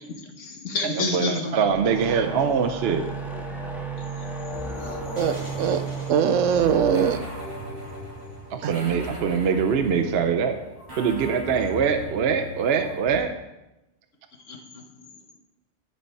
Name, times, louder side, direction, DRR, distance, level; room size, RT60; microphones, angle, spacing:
voice 1, 0.0-1.7 4.0-4.3 4.6-5.2 14.5-15.4, left 4 dB, 85° left, 4 dB, 1.6 m, -32 dB
voice 2, 1.0-3.0 8.5-10.6 11.0-13.3, right 6 dB, 60° right, 7 dB, 0.9 m, -23 dB
sound 1, 1.5-8.8, right 3 dB, ahead, 1.5 m, -35 dB
sound 2, 4.5-13.2, equal, 35° right, 4.1 m, -38 dB
voice 3, 5.1-7.2 8.6-8.7, right 7 dB, 85° right, 11 dB, 1.0 m, -22 dB
10.5 x 6.9 x 4.6 m, 0.95 s
omnidirectional pair, 1.3 m